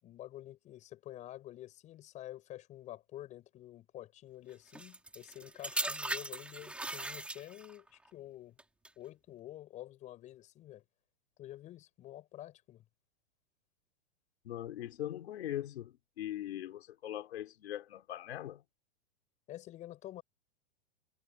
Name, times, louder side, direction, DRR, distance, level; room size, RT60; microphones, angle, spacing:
voice 1, 0.0-8.6 9.0-10.8 11.4-12.8 19.5-20.2, left 14 dB, 20° left, 7.3 m, -49 dB
sound 1, 4.7-7.8 8.6-8.9, right 2 dB, 5° right, 3.8 m, -39 dB
voice 2, 14.4-18.6, left 12 dB, 60° left, 4.1 m, -41 dB
supercardioid pair, 170°, 35 cm